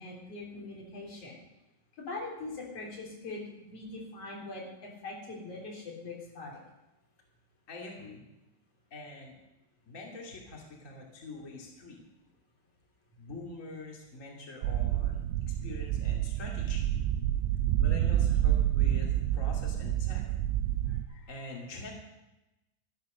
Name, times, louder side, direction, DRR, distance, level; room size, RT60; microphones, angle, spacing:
voice 1, 0.0-1.4 2.0-6.6, left 2 dB, 35° left, -2 dB, 3.7 m, -42 dB
voice 2, 7.7-8.2 8.9-9.3 9.8-12.0 13.2-17.0 17.8-20.2 20.8-21.9, left 2 dB, 70° left, -2 dB, 0.7 m, -45 dB
sound 1, 14.6-21.0, right 12 dB, 90° right, 3.3 m, -28 dB
13.0 x 10.5 x 6.6 m, 0.97 s
omnidirectional pair, 5.9 m